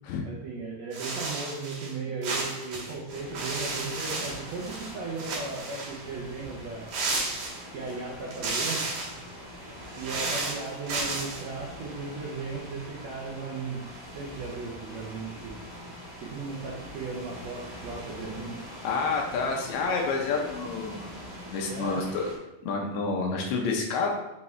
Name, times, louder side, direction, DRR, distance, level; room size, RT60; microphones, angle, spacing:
voice 1, 0.3-6.9 7.7-8.8 10.0-13.8 14.1-15.6 16.2-18.6 21.7-22.2, right 4 dB, 85° right, -4 dB, 1.5 m, -36 dB
sound 1, 0.9-1.9 2.2-4.9 5.2-6.0 6.9-7.9 8.3-9.2 9.8-11.4, right 3 dB, 65° right, 2.6 m, -33 dB
sound 2, 3.1-22.4, equal, 25° right, 1.7 m, -43 dB
voice 2, 18.8-22.2 22.6-24.1, left 4 dB, 85° left, 0 dB, 1.6 m, -29 dB
5.7 x 5.4 x 3.2 m, 0.99 s
omnidirectional pair, 4.3 m